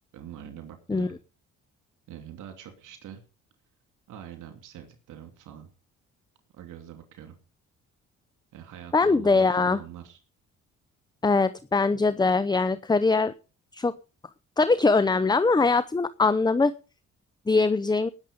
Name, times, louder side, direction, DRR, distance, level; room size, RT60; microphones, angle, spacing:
voice 1, 0.1-1.1 2.1-3.2 4.1-5.7 6.5-7.3 8.5-10.2, right 10 dB, 85° right, 6 dB, 2.9 m, -44 dB
voice 2, 8.9-9.8 11.2-13.3 13.7-13.9 14.6-16.7 17.5-18.1, left 3 dB, 15° left, 14 dB, 0.7 m, -22 dB
19.0 x 7.4 x 5.3 m, 0.34 s
cardioid pair, 90°, 30 cm